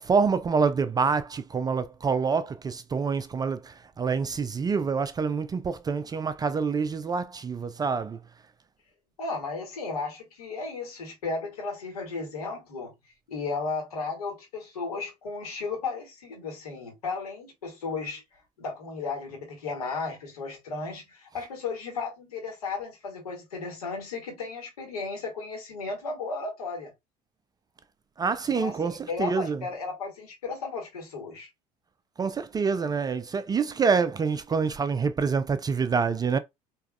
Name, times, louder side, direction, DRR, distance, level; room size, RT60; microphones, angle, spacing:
voice 1, 0.0-8.2 28.2-29.6 32.2-36.4, right 5 dB, 20° right, 0.4 m, -26 dB
voice 2, 9.2-12.9 13.3-18.2 18.6-26.9 28.5-31.5, left 4 dB, 75° left, 1.7 m, -34 dB
4.6 x 3.0 x 2.2 m
figure-of-eight pair, 60°, 19 cm